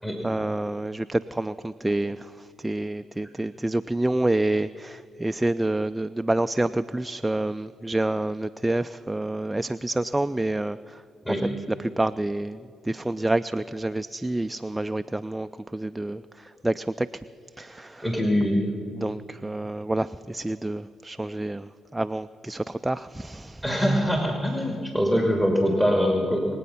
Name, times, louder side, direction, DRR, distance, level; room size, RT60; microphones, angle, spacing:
voice 1, 0.2-11.0 12.0-17.1 17.6-18.0 19.0-23.6, right 1 dB, 15° right, 11 dB, 0.3 m, -28 dB
voice 2, 18.0-18.6 23.6-26.5, equal, 10° left, 1 dB, 2.4 m, -23 dB
23.5 x 8.4 x 5.7 m, 2.6 s
hypercardioid pair, 50°, 0 cm